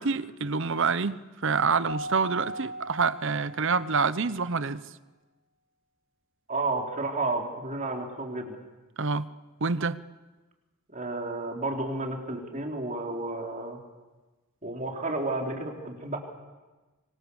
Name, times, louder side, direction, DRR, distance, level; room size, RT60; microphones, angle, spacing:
voice 1, 0.0-4.8 9.0-9.3 9.6-10.0, right 4 dB, 55° right, 15 dB, 0.8 m, -27 dB
Keyboard (musical), 1.9-4.1, right 1 dB, 70° left, 2.2 m, -39 dB
voice 2, 6.5-8.6 10.9-13.8 14.6-16.2, right 2 dB, 35° right, 1 dB, 3.8 m, -31 dB
25.5 x 24.5 x 7.1 m, 1.2 s
head